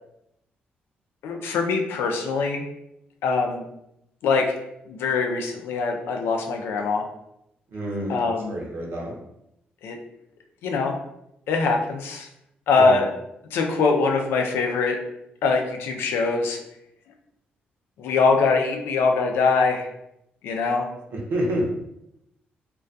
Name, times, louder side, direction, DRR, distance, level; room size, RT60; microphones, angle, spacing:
voice 1, 1.2-2.6 3.2-3.6 4.2-4.6 4.9-7.1 8.1-8.5 9.8-10.0 10.6-11.0 11.5-12.3 12.7-13.1 13.5-15.0 15.4-16.6 18.0-19.9 20.4-20.9, left 4 dB, 90° left, 3 dB, 0.4 m, -23 dB
voice 2, 7.7-8.2 8.5-9.2 12.8-13.0 21.1-21.7, equal, 70° right, -1 dB, 0.7 m, -28 dB
2.3 x 2.2 x 2.5 m, 0.82 s
cardioid pair, 105°, 4 cm